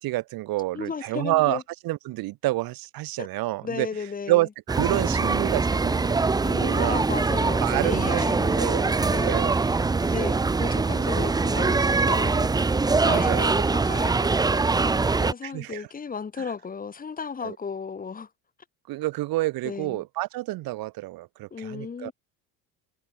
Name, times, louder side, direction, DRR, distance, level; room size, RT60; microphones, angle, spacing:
voice 1, 0.0-3.9 4.3-6.2 6.6-7.0 7.6-8.2 8.6-8.8 9.2-9.6 13.1-13.5 15.4-15.8 17.4-17.6 18.9-22.1, right 18 dB, 60° right, 3.6 m, -28 dB
voice 2, 0.7-1.6 3.2-3.3 3.6-4.5 6.4-9.7 10.0-12.5 13.0-18.3 19.6-20.0 21.5-22.1, left 5 dB, 20° left, 6.2 m, -35 dB
sound 1, 4.7-15.3, right 3 dB, 10° right, 0.8 m, -23 dB
cardioid pair, 150°, 39 cm